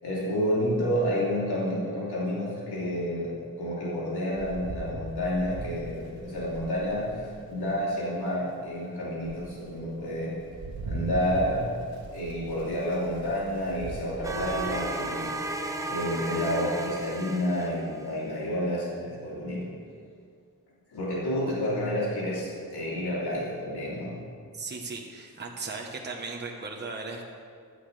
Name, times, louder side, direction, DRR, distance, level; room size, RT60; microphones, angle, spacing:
voice 1, 0.0-10.3 10.8-11.7 12.1-19.7 20.9-24.1, equal, 90° left, -7 dB, 3.2 m, -30 dB
Rain, 4.3-7.8 8.4-8.5 9.0-15.6, right 2 dB, 70° right, 1.3 m, -41 dB
sound 1, 14.2-18.2, right 2 dB, 10° right, 0.7 m, -34 dB
voice 2, 24.5-27.2, right 3 dB, 30° right, -1 dB, 1.1 m, -37 dB
15.0 x 11.5 x 3.4 m, 2.3 s
wide cardioid pair, 145°, 38 cm